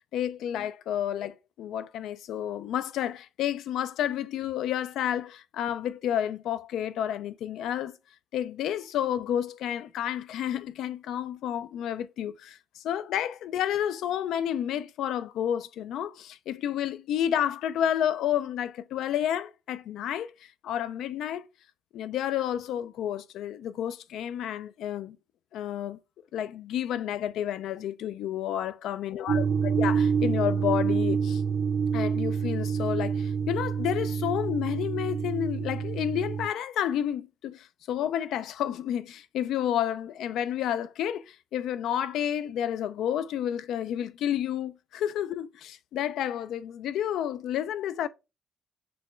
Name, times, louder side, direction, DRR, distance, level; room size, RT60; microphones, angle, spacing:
voice 1, 0.0-7.9 8.3-20.3 20.6-21.5 21.9-25.2 25.5-26.0 26.3-31.4 31.9-48.1, left 10 dB, 85° left, 0.3 m, -30 dB
sound 1, 29.3-36.5, right 6 dB, 70° right, 0.3 m, -27 dB
6.0 x 2.3 x 3.1 m
cardioid pair, 100°, 0 cm